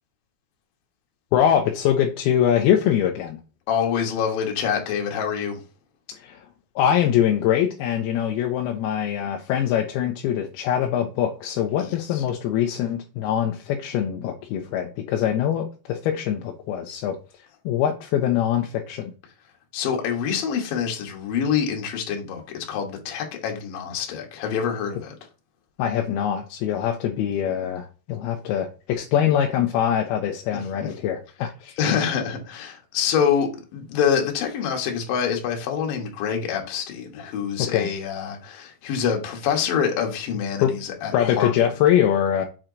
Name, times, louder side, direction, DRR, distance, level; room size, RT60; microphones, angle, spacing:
voice 1, 1.3-3.4 6.1-6.4 6.8-17.2 17.7-19.1 25.8-31.8 37.7-37.9 40.6-40.7 41.1-42.5, left 10 dB, 85° left, 2.7 m, -23 dB
voice 2, 3.7-5.6 11.8-12.2 19.7-25.1 30.8-30.9 31.8-41.5, left 7 dB, 70° left, 3.0 m, -26 dB
7.8 x 4.5 x 3.8 m
omnidirectional pair, 4.5 m